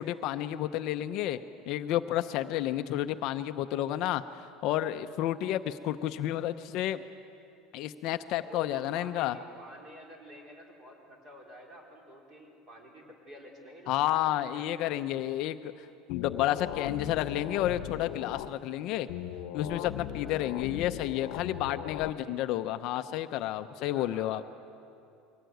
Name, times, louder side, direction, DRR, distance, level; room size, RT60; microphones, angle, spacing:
voice 1, 0.0-1.4 1.7-4.2 4.6-7.0 7.7-9.4 13.9-19.1 19.5-24.4, left 13 dB, 50° left, 9 dB, 0.6 m, -31 dB
voice 2, 8.5-14.9 20.2-20.7 23.9-24.5, equal, 30° right, 0 dB, 4.0 m, -50 dB
sound 1, 16.1-18.5 19.1-22.1, left 12 dB, 75° left, 0.9 m, -38 dB
23.0 x 17.5 x 9.3 m, 2.6 s
cardioid pair, 165°, 0 cm